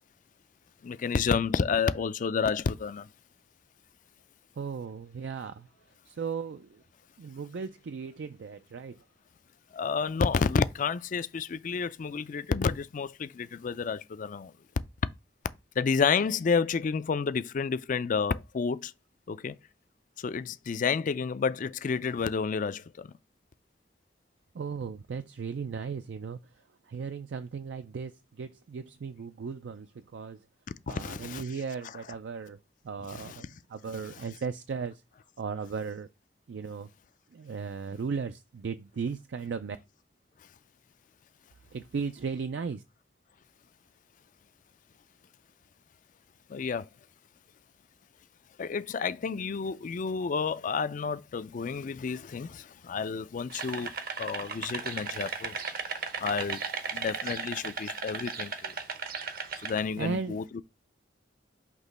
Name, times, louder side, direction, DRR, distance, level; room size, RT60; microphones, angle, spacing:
voice 1, 0.8-3.1 9.7-14.5 15.8-18.9 19.3-19.6 20.2-23.1 30.9-31.4 33.1-33.4 46.5-46.9 48.6-53.9 54.2-55.6 56.2-58.7 59.6-60.6, left 5 dB, 45° left, 0.4 m, -30 dB
voice 2, 4.6-5.7 6.1-6.8 7.2-9.0 24.5-26.4 26.9-30.4 30.9-32.6 32.8-35.0 35.4-36.1 36.5-36.9 37.3-39.8 41.7-42.8 60.0-60.4, right 5 dB, 70° right, 0.4 m, -36 dB
sound 1, 53.5-59.8, right 5 dB, 55° right, 0.8 m, -36 dB
6.0 x 3.0 x 5.3 m
head